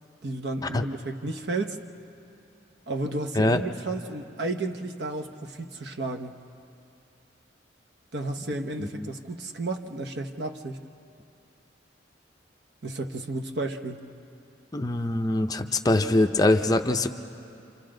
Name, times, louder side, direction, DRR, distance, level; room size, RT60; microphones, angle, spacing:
voice 1, 0.2-1.8 2.9-6.4 8.1-10.8 12.8-14.0, right 2 dB, 65° right, 6 dB, 1.0 m, -32 dB
voice 2, 14.7-17.1, left 2 dB, 20° left, 6 dB, 0.5 m, -23 dB
29.5 x 26.5 x 3.9 m, 2.7 s
head